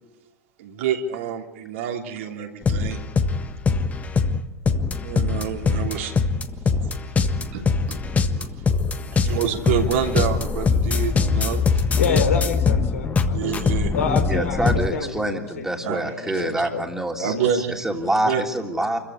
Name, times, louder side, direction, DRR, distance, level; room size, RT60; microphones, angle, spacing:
voice 1, 0.6-3.0 4.7-6.2 6.8-6.9 7.5-8.0 8.4-8.5 9.1-11.8 13.3-13.9 15.8-16.4 17.2-17.8 18.2-18.4, right 8 dB, 60° right, 2 dB, 3.2 m, -28 dB
sound 1, 2.6-14.9, left 4 dB, 20° left, 1.5 m, -22 dB
voice 2, 12.0-13.5 13.9-16.8 17.2-17.5, left 5 dB, 75° left, 5 dB, 3.7 m, -28 dB
voice 3, 14.3-19.0, right 1 dB, 5° right, 2 dB, 3.2 m, -26 dB
28.5 x 15.0 x 8.6 m, 1.1 s
figure-of-eight pair, 90°, 8 cm